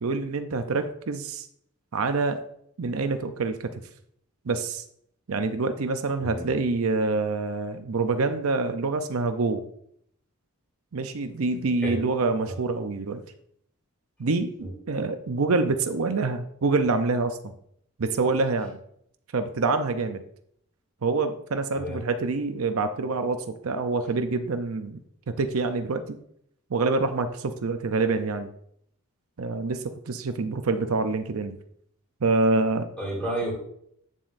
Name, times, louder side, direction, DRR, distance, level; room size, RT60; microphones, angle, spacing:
voice 1, 0.0-1.5 1.9-2.4 2.8-3.7 4.5-4.8 5.3-9.6 10.9-13.2 14.2-17.5 18.0-18.8 19.3-20.2 21.0-25.0 25.4-26.2 26.7-28.5 29.4-31.6 32.2-32.9, right 3 dB, 75° right, 8 dB, 0.6 m, -26 dB
voice 2, 33.0-33.5, right 1 dB, 5° left, -3 dB, 3.0 m, -31 dB
9.1 x 7.3 x 2.6 m, 0.68 s
head